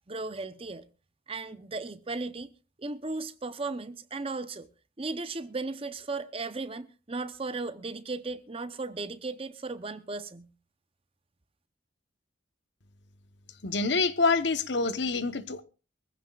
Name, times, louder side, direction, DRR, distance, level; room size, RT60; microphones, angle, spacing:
voice 1, 0.1-0.8 1.3-2.5 2.8-4.7 5.0-10.5, right 3 dB, 30° right, 0.8 m, -36 dB
voice 2, 13.6-15.6, left 4 dB, 60° left, 1.0 m, -26 dB
24.0 x 15.5 x 2.4 m
head